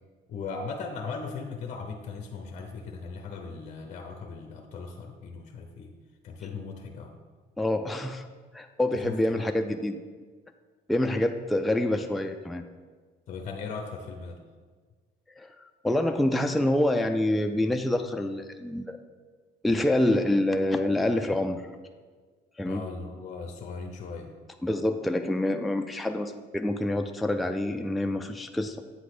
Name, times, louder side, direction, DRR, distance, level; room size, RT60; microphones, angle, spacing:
voice 1, 0.3-5.9 6.2-7.2 8.9-9.5 13.3-14.4 22.6-24.3, left 4 dB, 45° left, 4 dB, 0.6 m, -38 dB
voice 2, 7.6-8.3 8.5-10.0 10.9-12.6 15.4-15.5 15.8-19.0 19.6-21.6 22.6-22.8 24.6-28.8, left 1 dB, ahead, 6 dB, 0.3 m, -26 dB
8.1 x 3.0 x 6.0 m, 1.5 s
cardioid pair, 110°, 17 cm